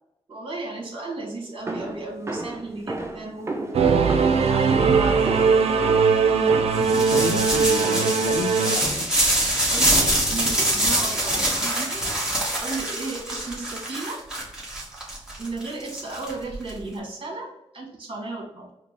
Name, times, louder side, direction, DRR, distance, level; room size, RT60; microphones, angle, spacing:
voice 1, 0.3-4.0 4.4-5.3 9.7-12.0 12.6-14.2 15.4-18.7, right 2 dB, 50° right, 0 dB, 1.4 m, -34 dB
sound 1, 1.7-8.3 8.8-9.3 9.9-10.4, right 2 dB, 25° right, 0.5 m, -34 dB
Singing / Musical instrument, 3.7-8.8, right 5 dB, 75° right, 0.5 m, -20 dB
voice 2, 6.8-9.2, left 5 dB, 85° left, 8 dB, 0.4 m, -31 dB
sound 2, 6.8-16.7, right 1 dB, 5° right, 1.3 m, -24 dB
4.7 x 2.1 x 3.3 m, 0.87 s
wide cardioid pair, 100°, 10 cm